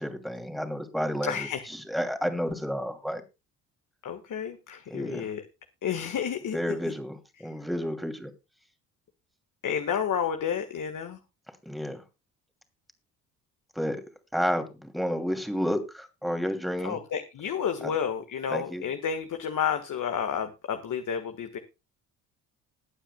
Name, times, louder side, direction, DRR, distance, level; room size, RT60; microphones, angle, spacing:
voice 1, 0.0-1.5 1.9-3.2 4.9-5.2 6.5-8.3 11.7-12.0 13.8-14.0 14.3-17.0 17.8-17.9 18.5-18.9, equal, ahead, 6 dB, 2.8 m, -31 dB
voice 2, 1.2-1.7 4.0-5.4 5.8-6.6 6.8-6.9 7.4-7.6 9.6-11.2 16.8-21.6, left 8 dB, 45° left, 7 dB, 1.6 m, -31 dB
21.0 x 9.0 x 2.3 m, 0.27 s
hypercardioid pair, 55°, 42 cm